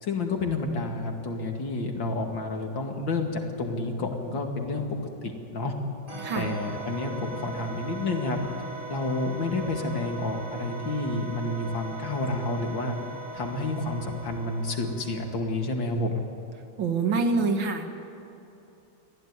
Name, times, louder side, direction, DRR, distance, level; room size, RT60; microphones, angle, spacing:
voice 1, 0.0-4.9 5.2-5.7 6.3-8.4 8.9-13.0 13.3-16.2, left 2 dB, 75° left, 3 dB, 2.9 m, -30 dB
sound 1, 6.1-15.5, right 3 dB, 45° right, 7.4 m, -40 dB
voice 2, 16.8-17.9, right 4 dB, 85° right, 6 dB, 2.5 m, -25 dB
24.0 x 16.0 x 9.7 m, 2.9 s
omnidirectional pair, 2.0 m